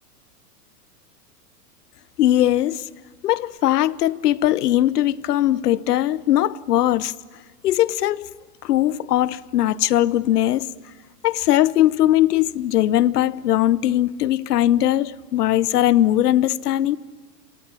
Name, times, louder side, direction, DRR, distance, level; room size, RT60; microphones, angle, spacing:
voice 1, 2.2-2.9 3.2-7.1 7.6-8.3 8.6-10.7 11.2-17.0, left 13 dB, 75° left, 0.9 m, -20 dB
29.0 x 24.0 x 8.5 m
hypercardioid pair, 110°, 47 cm